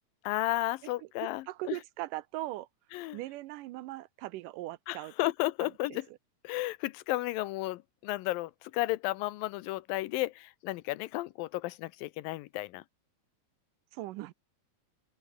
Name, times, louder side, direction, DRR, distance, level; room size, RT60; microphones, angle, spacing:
voice 1, 0.2-1.8 2.9-3.2 4.9-6.1 6.4-12.8, left 18 dB, 90° left, 2.5 m, -33 dB
voice 2, 1.5-2.7 3.1-5.1 5.9-6.0 13.9-14.3, right 17 dB, 80° right, 2.2 m, -39 dB
open air
omnidirectional pair, 4.0 m